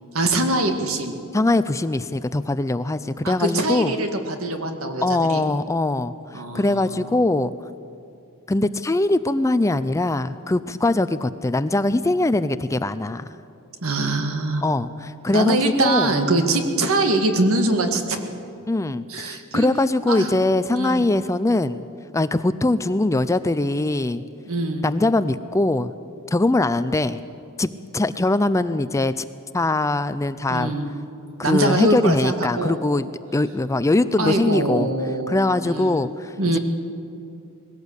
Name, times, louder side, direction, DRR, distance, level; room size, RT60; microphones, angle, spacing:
voice 1, 0.1-1.1 3.2-5.0 5.3-5.4 6.3-7.1 13.8-14.6 15.3-18.2 19.1-19.7 20.1-20.3 20.7-21.1 24.5-24.9 30.5-30.9 31.4-32.8 34.2-35.9 36.4-36.6, right 2 dB, 70° right, 5 dB, 2.0 m, -23 dB
voice 2, 1.3-4.0 5.0-7.5 8.5-13.3 14.6-16.1 18.7-21.8 22.1-24.2 24.8-25.9 26.3-27.2 27.6-29.2 29.5-30.7 31.4-34.9 35.3-36.6, left 2 dB, 15° left, 13 dB, 0.4 m, -22 dB
21.0 x 17.0 x 8.2 m, 2.6 s
head